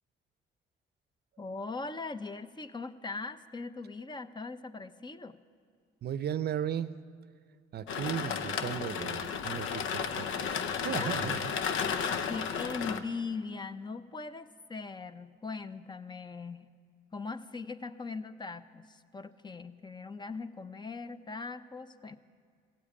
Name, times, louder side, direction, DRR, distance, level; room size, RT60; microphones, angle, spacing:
voice 1, 1.4-5.4 10.9-11.2 12.3-16.7 17.1-22.2, left 4 dB, 20° left, 12 dB, 0.7 m, -40 dB
voice 2, 6.0-6.9 7.7-11.5, right 9 dB, 55° right, 14 dB, 0.6 m, -36 dB
sound 1, 7.9-13.0, left 7 dB, 85° left, 0.7 m, -33 dB
16.0 x 8.5 x 8.7 m, 2.1 s
cardioid pair, 90°, 20 cm